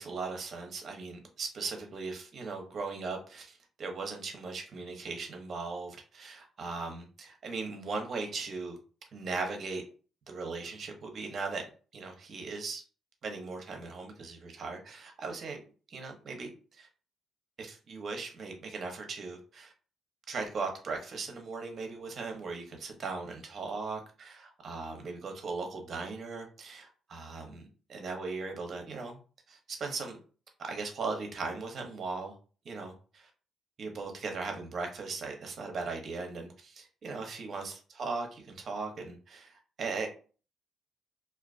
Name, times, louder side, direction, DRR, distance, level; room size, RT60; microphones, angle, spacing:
voice 1, 0.0-8.8 9.1-9.8 10.3-11.7 11.9-12.8 13.2-15.6 15.9-16.5 16.8-16.9 17.6-19.7 20.3-27.6 27.9-29.2 29.5-30.2 30.6-32.3 32.6-33.3 33.8-40.1, right 4 dB, 55° right, 0.7 m, -38 dB
2.3 x 2.3 x 2.4 m
cardioid pair, 90°, 0 cm